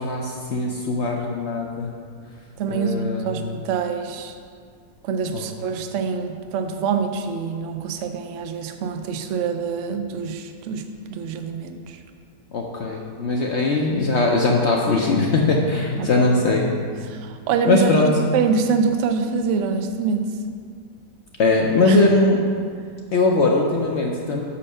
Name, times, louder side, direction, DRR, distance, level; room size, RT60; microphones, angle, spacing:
voice 1, 0.0-1.9 2.7-3.4 5.3-5.4 12.5-16.7 17.6-18.1 21.4-22.5 23.1-24.4, left 2 dB, 65° left, 0 dB, 0.6 m, -20 dB
voice 2, 2.6-4.3 5.0-12.0 16.0-16.3 17.1-17.9 18.3-20.3 21.8-22.0, right 5 dB, 70° right, 7 dB, 0.7 m, -25 dB
5.5 x 5.3 x 6.5 m, 2.1 s
omnidirectional pair, 1.8 m